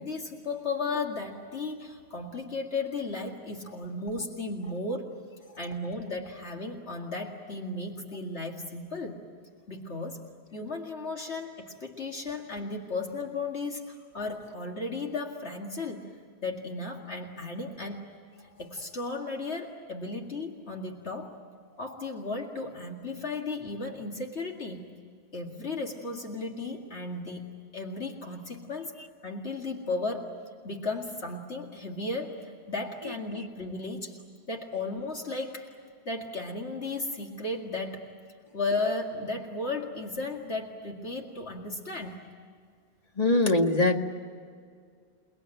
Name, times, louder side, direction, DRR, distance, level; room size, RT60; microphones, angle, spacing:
voice 1, 0.0-5.1 5.6-9.2 9.7-10.2 10.5-18.0 18.4-21.4 21.8-24.9 25.3-28.9 29.2-30.3 30.6-34.2 34.5-35.7 36.1-38.1 38.5-42.3, left 3 dB, 70° left, 1 dB, 2.4 m, -35 dB
voice 2, 43.2-44.0, left 2 dB, 35° left, 3 dB, 2.0 m, -22 dB
29.0 x 20.5 x 9.0 m, 2.1 s
omnidirectional pair, 1.2 m